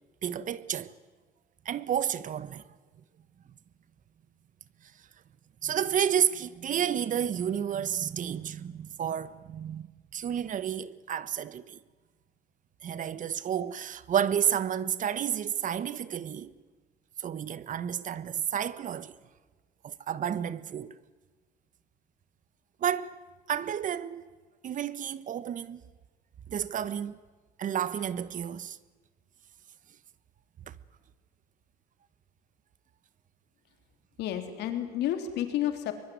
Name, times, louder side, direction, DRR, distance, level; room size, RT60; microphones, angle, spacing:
voice 1, 0.2-0.9 1.6-2.6 5.6-9.9 10.1-11.8 12.8-16.5 17.2-19.2 19.8-21.0 22.8-23.2 23.5-24.2 24.6-25.8 26.5-27.2 27.6-28.8 30.7-30.8, right 9 dB, 50° right, 1.2 m, -31 dB
voice 2, 34.2-35.9, left 11 dB, 85° left, 3.5 m, -30 dB
23.5 x 21.5 x 9.5 m
cardioid pair, 110°, 17 cm